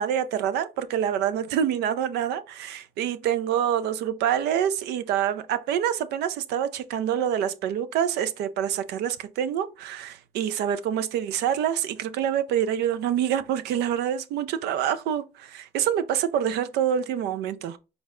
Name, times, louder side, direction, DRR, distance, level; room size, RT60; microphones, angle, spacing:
voice 1, 0.0-17.8, right 9 dB, 80° right, 0.4 m, -26 dB
4.6 x 2.1 x 3.6 m
cardioid pair, 110°, 17 cm